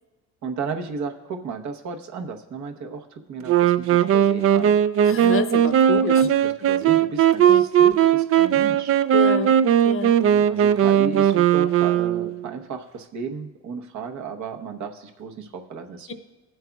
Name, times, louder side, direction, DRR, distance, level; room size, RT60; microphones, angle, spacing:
voice 1, 0.4-4.7 6.0-9.0 10.3-16.1, right 5 dB, 70° right, 4 dB, 1.0 m, -34 dB
Wind instrument woodwind instrument, 3.5-12.5, right 10 dB, 50° right, 0.4 m, -18 dB
voice 2, 5.0-6.3 7.4-7.6 9.1-9.6 9.8-10.2 16.1-16.2, left 6 dB, 45° left, 9 dB, 0.8 m, -28 dB
19.5 x 7.8 x 2.3 m, 1.2 s
cardioid pair, 90°, 30 cm